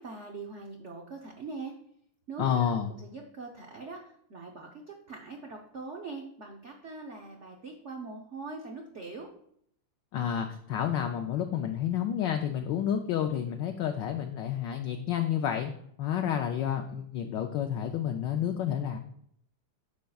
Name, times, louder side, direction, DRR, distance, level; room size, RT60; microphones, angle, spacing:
voice 1, 0.0-1.7 2.3-4.0 4.3-9.3, right 3 dB, 75° right, 1 dB, 0.6 m, -42 dB
voice 2, 2.4-2.9 10.1-15.7 16.0-19.0, left 9 dB, 75° left, 5 dB, 1.1 m, -30 dB
10.0 x 6.5 x 2.3 m, 0.69 s
omnidirectional pair, 2.4 m